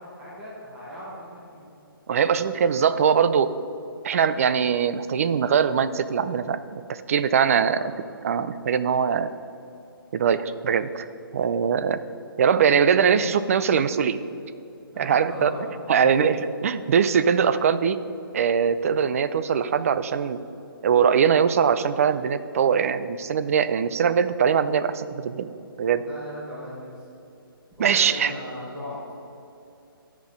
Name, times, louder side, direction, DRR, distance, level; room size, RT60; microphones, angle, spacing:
voice 1, 0.0-1.7 7.5-7.8 14.9-16.2 26.0-27.0 27.8-29.1, left 1 dB, 5° right, -9 dB, 1.6 m, -38 dB
voice 2, 2.1-3.5 4.0-7.8 8.2-9.3 10.1-11.1 11.3-12.0 12.4-14.2 15.0-15.5 15.9-18.0 18.3-20.4 20.8-25.5 25.8-26.0 27.8-28.3, right 7 dB, 40° right, 13 dB, 0.4 m, -22 dB
12.5 x 5.1 x 5.3 m, 2.7 s
hypercardioid pair, 160°, 12 cm